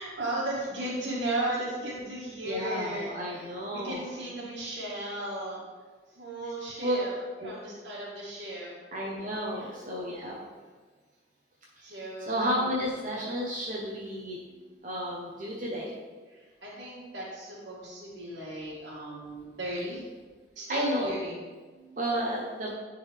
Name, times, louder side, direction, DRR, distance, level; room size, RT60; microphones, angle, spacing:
voice 1, 0.0-5.6 6.1-7.2 7.4-8.8 9.5-9.7 11.8-12.6 16.3-20.0 20.5-21.4 21.7-22.0, right 1 dB, 80° right, -7 dB, 1.6 m, -35 dB
voice 2, 2.4-4.1 6.8-7.0 7.4-7.5 8.9-10.4 11.8-14.4 14.8-15.9 20.7-21.1 21.9-22.7, equal, 45° right, -3 dB, 0.8 m, -32 dB
10.0 x 3.8 x 3.3 m, 1.4 s
head